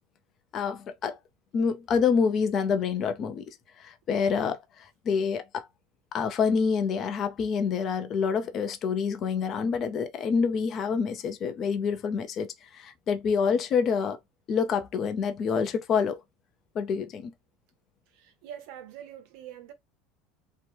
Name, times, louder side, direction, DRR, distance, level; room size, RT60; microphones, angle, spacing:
voice 1, 0.5-1.2 1.5-3.4 3.8-5.7 6.1-14.2 14.5-16.2 16.7-17.3, left 6 dB, 35° left, 0.5 m, -27 dB
voice 2, 18.1-19.7, right 10 dB, 65° right, 0.8 m, -44 dB
2.9 x 2.1 x 3.0 m
cardioid pair, 155°, 0 cm